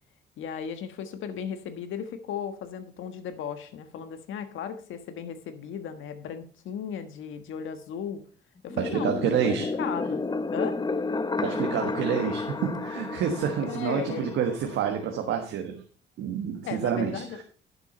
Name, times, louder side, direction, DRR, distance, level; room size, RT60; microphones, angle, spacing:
voice 1, 0.4-8.2 8.6-10.2 10.5-10.8 13.6-14.4 16.6-17.4, left 7 dB, 80° left, 9 dB, 1.5 m, -36 dB
sound 1, 8.7-15.2, left 3 dB, 20° left, 0.7 m, -32 dB
voice 2, 8.8-9.7 11.4-15.8 16.2-17.2, right 8 dB, 85° right, 3 dB, 1.3 m, -28 dB
11.0 x 7.1 x 4.4 m, 0.40 s
cardioid pair, 90°, 20 cm